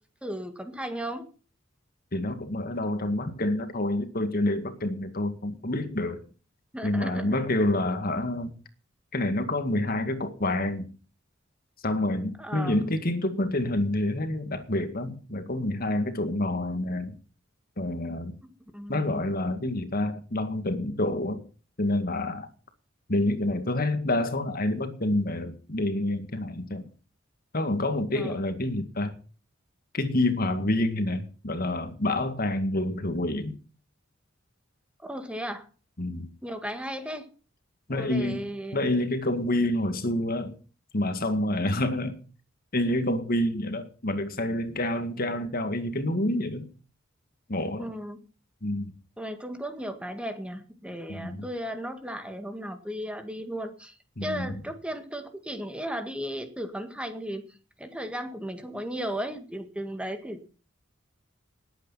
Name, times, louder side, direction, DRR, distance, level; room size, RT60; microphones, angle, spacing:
voice 1, 0.2-1.2 6.7-7.4 12.4-12.8 18.4-19.3 28.1-28.4 35.0-35.7 36.4-37.3 37.9-38.8 47.8-48.2 49.2-57.5 57.8-60.6, equal, 5° right, 1.9 m, -35 dB
voice 2, 2.1-6.2 6.8-8.5 9.1-10.9 11.8-17.2 17.8-18.3 18.9-21.4 21.8-22.5 23.1-26.8 27.5-29.1 29.9-33.6 36.0-36.3 37.9-38.4 38.7-40.5 40.9-42.2 42.7-46.7 47.5-47.9 48.6-48.9 51.1-51.5 54.2-54.5, left 1 dB, 50° left, 2.0 m, -28 dB
19.5 x 8.8 x 5.7 m
head